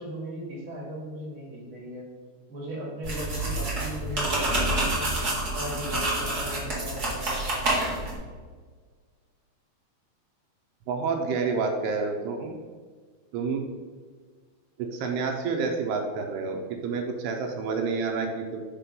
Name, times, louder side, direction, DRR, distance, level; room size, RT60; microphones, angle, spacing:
voice 1, 0.0-2.0 2.5-5.2 5.5-7.6, right 1 dB, 30° right, -4 dB, 1.6 m, -37 dB
sound 1, 3.0-8.1, right 1 dB, 55° right, 1.0 m, -28 dB
voice 2, 10.9-12.6 13.3-13.6 14.8-18.6, right 4 dB, 80° right, 3 dB, 2.6 m, -29 dB
5.8 x 4.6 x 5.2 m, 1.5 s
omnidirectional pair, 4.8 m